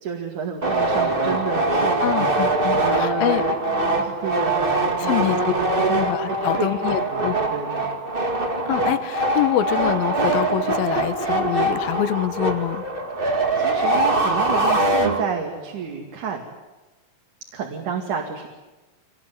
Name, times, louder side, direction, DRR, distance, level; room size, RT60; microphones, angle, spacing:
voice 1, 0.0-2.0 2.6-5.9 6.3-7.9 13.6-16.4 17.5-18.5, right 6 dB, 60° right, 1 dB, 3.6 m, -30 dB
sound 1, 0.6-15.6, right 2 dB, 20° right, 1.7 m, -23 dB
voice 2, 2.0-3.4 5.0-5.4 5.9-7.4 8.7-12.8, left 12 dB, 85° left, 13 dB, 2.9 m, -25 dB
25.0 x 20.0 x 9.4 m, 1.2 s
omnidirectional pair, 4.1 m